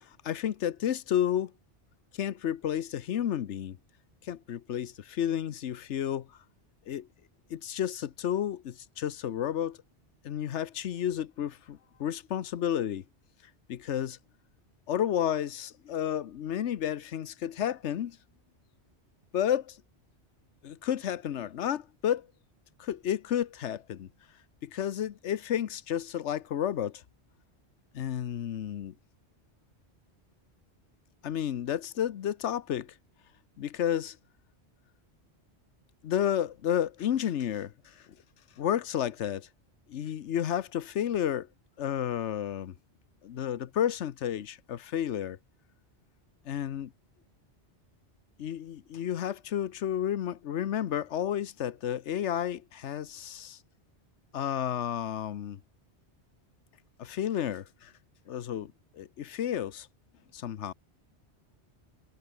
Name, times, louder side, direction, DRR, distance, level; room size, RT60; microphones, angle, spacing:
voice 1, 0.2-1.5 2.2-3.8 4.3-6.3 6.9-7.1 7.5-9.8 10.2-13.0 13.7-14.2 14.9-18.2 19.3-19.8 20.6-22.3 22.8-24.1 24.6-26.9 27.9-28.9 31.2-32.9 33.6-34.2 36.0-37.7 38.6-39.5 39.9-41.5 41.8-42.7 43.2-45.4 46.5-46.9 48.4-53.6 54.3-55.6 57.0-57.9 58.3-59.9 60.3-60.7, left 10 dB, 90° left, 1.1 m, -31 dB
omnidirectional pair, 1.1 m